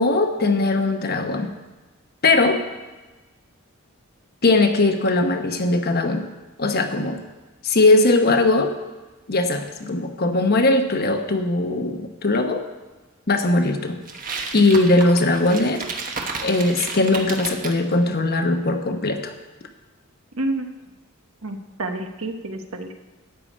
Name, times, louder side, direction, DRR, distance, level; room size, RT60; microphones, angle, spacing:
voice 1, 0.0-1.5 2.2-2.6 4.4-6.3 6.6-7.2 7.6-8.8 9.3-12.6 13.3-14.0 14.5-15.8 16.4-19.3, left 2 dB, 50° left, 6 dB, 1.0 m, -19 dB
sound 1, 14.1-17.8, right 4 dB, 40° right, 1.2 m, -32 dB
voice 2, 20.3-20.7 21.4-22.9, right 2 dB, 70° right, 5 dB, 1.1 m, -29 dB
12.5 x 5.0 x 8.7 m, 1.2 s
head